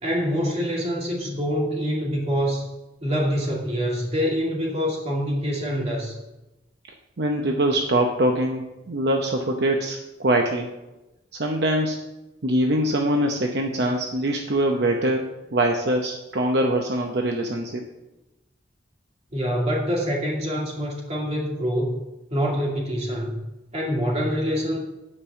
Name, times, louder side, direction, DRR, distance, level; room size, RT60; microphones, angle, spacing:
voice 1, 0.0-2.7 3.0-6.2 19.3-22.0 22.3-23.5 23.7-24.8, equal, 35° right, -3 dB, 2.6 m, -25 dB
voice 2, 7.2-10.7 11.3-12.0 12.4-17.8, right 1 dB, 65° right, 2 dB, 0.8 m, -23 dB
9.6 x 5.4 x 6.9 m, 1.0 s
head